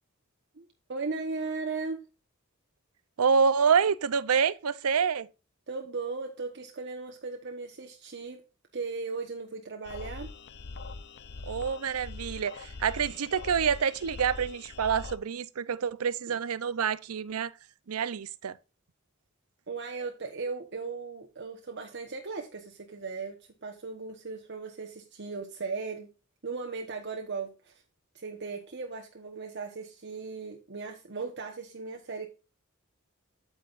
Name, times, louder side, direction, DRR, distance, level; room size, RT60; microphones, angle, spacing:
voice 1, 0.6-2.0 5.7-8.4 8.7-10.3 16.3-16.4 19.7-23.4 23.6-26.1 26.4-27.8 28.1-32.3, right 4 dB, 55° right, 1.1 m, -37 dB
voice 2, 3.2-5.3 11.4-17.5 17.9-18.6, right 6 dB, 85° right, 0.6 m, -27 dB
sound 1, 9.8-15.2, left 3 dB, 50° left, 0.6 m, -42 dB
9.0 x 8.9 x 2.5 m
head